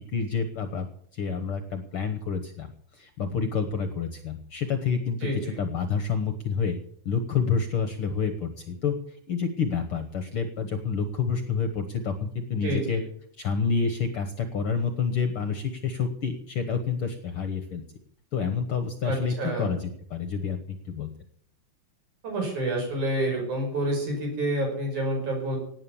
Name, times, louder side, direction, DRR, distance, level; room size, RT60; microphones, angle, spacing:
voice 1, 0.1-0.9 1.1-2.7 2.9-6.8 7.0-13.0 13.4-17.8 18.3-21.1, left 6 dB, 60° left, 9 dB, 1.6 m, -28 dB
voice 2, 5.2-5.6 12.6-13.0 19.0-19.7 22.2-25.6, right 1 dB, 65° right, 1 dB, 7.1 m, -28 dB
18.0 x 9.5 x 7.0 m, 0.63 s
omnidirectional pair, 3.6 m